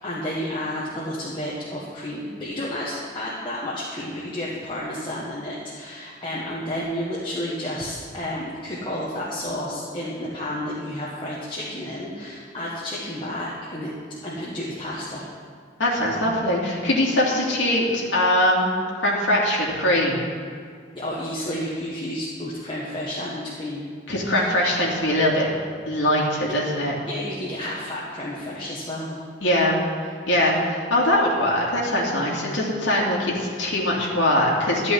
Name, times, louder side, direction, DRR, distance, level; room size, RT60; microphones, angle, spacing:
voice 1, 0.0-13.9 14.2-15.2 20.9-23.8 24.3-24.5 26.5-26.6 27.0-29.2, left 1 dB, 25° left, -7 dB, 1.6 m, -31 dB
voice 2, 15.8-18.7 19.0-20.2 24.1-25.5 25.9-26.9 29.4-29.8 30.3-34.9, left 1 dB, 80° left, -4 dB, 2.5 m, -22 dB
13.5 x 5.3 x 9.2 m, 2.1 s
head